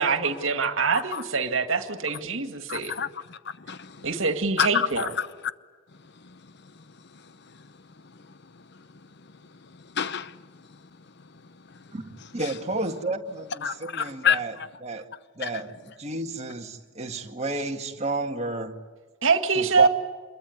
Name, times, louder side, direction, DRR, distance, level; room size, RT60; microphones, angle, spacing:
voice 1, 0.0-2.9 4.0-5.1 19.2-19.9, right 4 dB, 70° right, 2.2 m, -24 dB
voice 2, 2.7-3.4 3.7-4.1 4.6-5.3 6.2-6.3 9.9-10.4 12.4-12.5 13.6-14.4 15.4-15.5, left 8 dB, 55° left, 0.8 m, -27 dB
voice 3, 11.9-14.5 14.8-15.1 15.4-15.7 16.0-18.8 19.5-19.9, right 2 dB, 30° right, 1.9 m, -31 dB
27.0 x 22.5 x 9.7 m
head